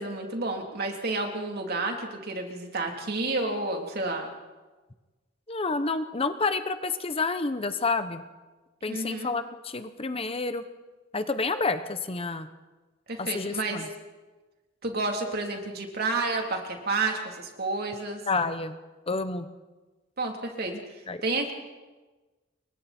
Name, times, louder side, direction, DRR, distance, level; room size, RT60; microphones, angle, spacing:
voice 1, 0.0-4.3 8.9-9.3 13.1-13.8 14.8-18.2 20.2-21.5, right 3 dB, 55° right, 2 dB, 3.4 m, -30 dB
voice 2, 5.5-8.2 8.8-10.6 11.1-12.5 13.2-13.9 18.3-18.8 19.1-19.5 21.1-21.2, left 3 dB, 30° left, 10 dB, 0.9 m, -29 dB
29.0 x 23.0 x 4.4 m, 1.2 s
head